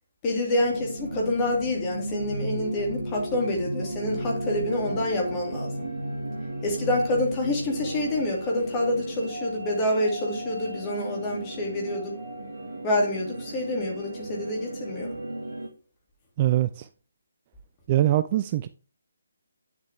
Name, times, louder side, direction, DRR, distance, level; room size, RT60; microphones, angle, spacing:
voice 1, 0.2-5.9 6.6-12.1 12.8-15.1, left 1 dB, 20° left, 2.7 m, -27 dB
sound 1, 0.5-15.7, right 1 dB, 50° right, 2.0 m, -34 dB
voice 2, 16.4-16.9 17.9-18.7, right 14 dB, 25° right, 0.3 m, -23 dB
9.4 x 7.3 x 3.5 m
figure-of-eight pair, 145°, 0 cm